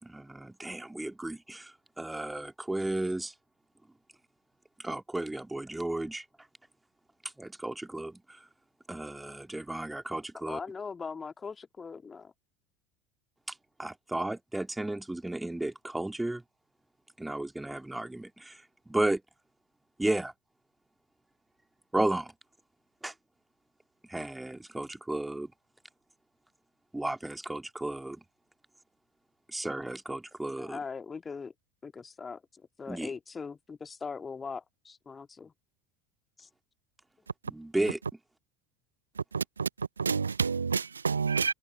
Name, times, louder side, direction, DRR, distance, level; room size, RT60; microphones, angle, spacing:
voice 1, 0.0-1.7 2.0-3.3 4.8-6.2 7.4-8.2 8.9-10.6 13.8-16.4 17.2-18.5 18.9-19.2 20.0-20.3 21.9-22.3 23.0-23.1 24.1-25.5 26.9-28.2 29.5-30.8 32.9-33.1 37.5-38.0, right 1 dB, 5° right, 2.4 m, -33 dB
voice 2, 10.5-12.3 30.6-31.5 31.8-35.5 36.4-36.5, left 5 dB, 20° left, 1.9 m, -40 dB
voice 3, 39.3-41.5, right 5 dB, 80° right, 0.4 m, -29 dB
figure-of-eight pair, 70°, 0 cm